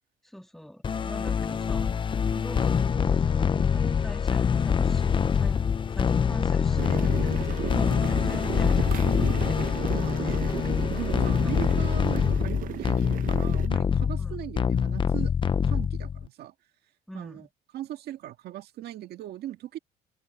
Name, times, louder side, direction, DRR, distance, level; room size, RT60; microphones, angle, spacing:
voice 1, 0.2-2.1 2.3-5.6 5.9-9.3 10.0-10.5 11.1-11.6 14.2-14.4 17.1-17.5, equal, ahead, 3.2 m, -43 dB
sound 1, 0.8-16.3, left 6 dB, 30° left, 0.7 m, -25 dB
sound 2, 6.8-13.7, right 11 dB, 55° right, 0.9 m, -35 dB
voice 2, 9.9-10.5 10.9-15.3 15.6-16.5 17.1-17.5 17.7-19.8, right 13 dB, 70° right, 1.8 m, -39 dB
cardioid pair, 110°, 17 cm